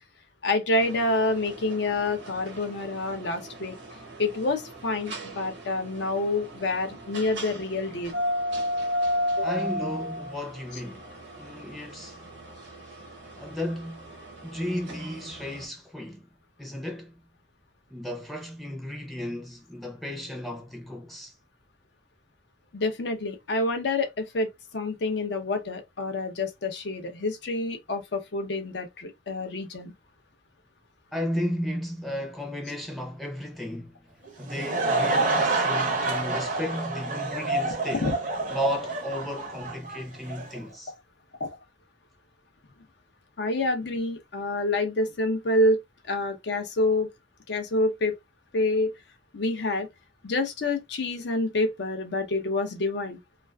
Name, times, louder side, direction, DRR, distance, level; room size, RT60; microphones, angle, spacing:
voice 1, 0.4-3.8 4.2-8.2 9.4-9.5 22.7-29.9 38.0-38.1 41.4-41.5 43.4-45.8 46.1-47.1 47.5-48.2 48.5-48.9 49.3-49.9 50.2-53.2, left 2 dB, 65° left, 0.6 m, -27 dB
sound 1, 0.7-15.6, equal, 75° right, 0.8 m, -35 dB
voice 2, 9.4-11.1 11.4-12.2 13.3-14.1 14.4-16.3 16.6-17.1 17.9-21.3 31.1-33.9 34.4-38.1 38.5-40.9, equal, ahead, 0.5 m, -34 dB
Laughter / Crowd, 34.3-40.6, right 2 dB, 45° right, 0.5 m, -28 dB
2.4 x 2.4 x 2.2 m
head